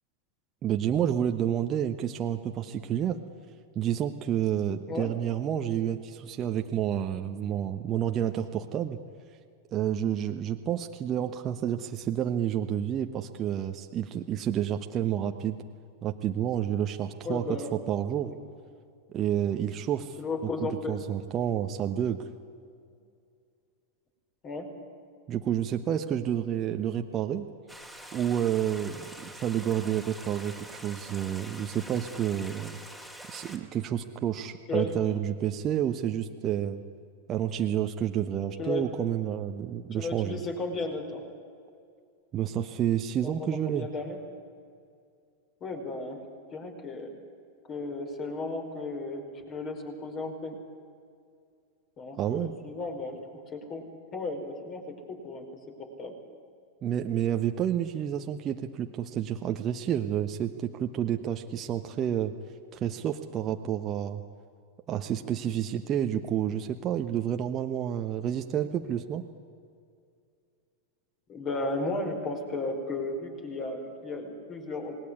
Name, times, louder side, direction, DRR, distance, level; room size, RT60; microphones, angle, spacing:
voice 1, 0.6-3.2 3.7-9.0 9.7-15.6 16.0-17.6 17.9-18.3 19.1-20.2 20.6-22.2 25.3-27.5 28.1-32.8 33.3-36.8 37.3-40.4 42.3-43.9 52.2-52.5 56.8-62.3 62.7-64.2 64.9-69.3, right 10 dB, 30° right, 5 dB, 1.1 m, -29 dB
voice 2, 17.2-17.8 20.2-21.0 24.4-24.7 34.7-34.9 38.6-38.9 39.9-41.2 43.2-44.2 45.6-46.2 46.5-47.1 47.7-50.5 52.0-53.2 53.5-53.8 54.1-55.4 56.0-56.1 71.3-75.0, left 3 dB, 30° left, 4 dB, 5.0 m, -34 dB
Stream, 27.7-33.6, right 1 dB, 5° left, 3.4 m, -45 dB
27.0 x 20.0 x 9.7 m, 2.3 s
figure-of-eight pair, 90°, 0 cm